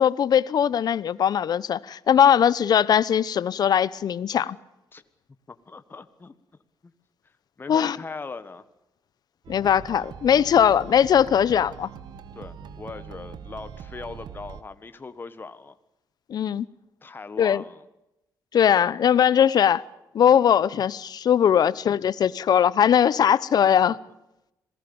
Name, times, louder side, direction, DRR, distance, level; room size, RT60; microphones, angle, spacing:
voice 1, 0.0-4.6 7.7-8.0 9.5-11.9 16.3-16.7 17.4-17.6 18.5-19.8 20.1-24.0, left 9 dB, 60° left, 0.9 m, -20 dB
voice 2, 5.5-6.3 6.8-6.9 7.6-8.6 12.3-15.7 17.0-17.8, left 4 dB, 30° left, 1.4 m, -39 dB
sound 1, 9.4-14.6, right 7 dB, 70° right, 1.5 m, -42 dB
27.0 x 18.5 x 7.1 m
cardioid pair, 100°, 8 cm